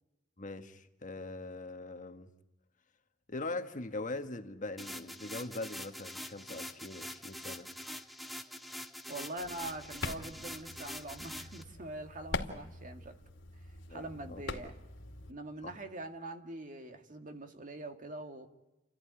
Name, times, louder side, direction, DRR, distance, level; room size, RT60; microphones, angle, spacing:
voice 1, 0.4-2.3 3.3-7.7 13.9-14.4 15.6-15.7, left 2 dB, 45° left, 1.5 m, -41 dB
sound 1, 4.8-11.6, equal, ahead, 1.3 m, -45 dB
voice 2, 9.1-13.2 13.9-14.7 15.3-18.5, right 2 dB, 45° right, 2.1 m, -43 dB
sound 2, 9.4-15.3, left 3 dB, 75° left, 2.4 m, -43 dB
30.0 x 13.5 x 9.9 m
head